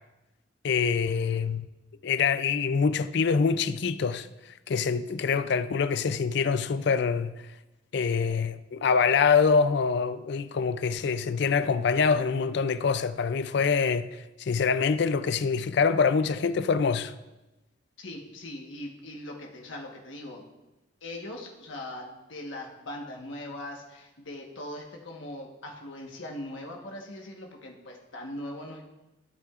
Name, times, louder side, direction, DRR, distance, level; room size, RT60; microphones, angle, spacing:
voice 1, 0.6-1.7 2.0-4.3 4.7-7.3 7.9-14.1 14.4-17.1, left 5 dB, 60° left, 0.4 m, -25 dB
voice 2, 18.0-20.4 21.0-28.9, left 1 dB, 80° left, 1.3 m, -40 dB
15.0 x 8.4 x 2.5 m
head